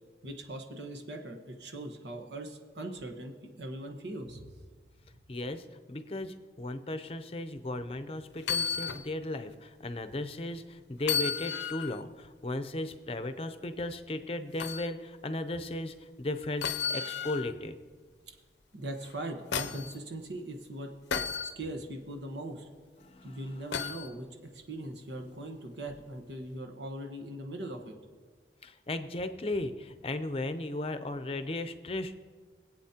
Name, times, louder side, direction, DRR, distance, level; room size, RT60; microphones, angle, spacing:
voice 1, 0.2-4.5 5.1-5.2 18.3-18.4 18.7-20.9 21.5-22.7 23.2-27.9, right 1 dB, 85° right, 4 dB, 1.2 m, -40 dB
voice 2, 5.3-17.8 23.0-23.4 28.6-32.1, left 2 dB, 35° left, 9 dB, 0.6 m, -36 dB
sound 1, 8.4-9.1 9.5-9.6 11.0-12.0 14.6-14.9 16.6-17.6 19.0-19.9 21.1-21.5 23.7-24.1 25.9-26.0, left 6 dB, 90° left, 0.6 m, -33 dB
23.0 x 8.2 x 2.9 m, 1.5 s
head